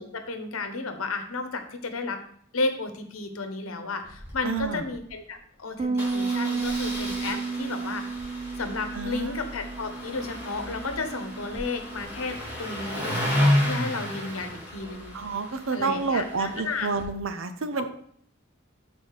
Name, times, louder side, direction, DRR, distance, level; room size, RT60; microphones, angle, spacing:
voice 1, 0.0-2.2 2.5-8.1 8.6-15.2 15.7-16.9 17.8-17.9, left 3 dB, 90° left, 7 dB, 0.9 m, -33 dB
Engine starting, 4.0-4.3 4.5-4.6 4.9-5.1 6.0-17.0, left 1 dB, 10° right, 3.1 m, -32 dB
voice 2, 4.4-4.8 8.9-9.4 15.1-17.9, right 4 dB, 70° right, 10 dB, 0.6 m, -29 dB
Bass guitar, 5.8-12.0, right 4 dB, 30° right, 0.4 m, -32 dB
6.6 x 4.3 x 4.6 m, 0.64 s
head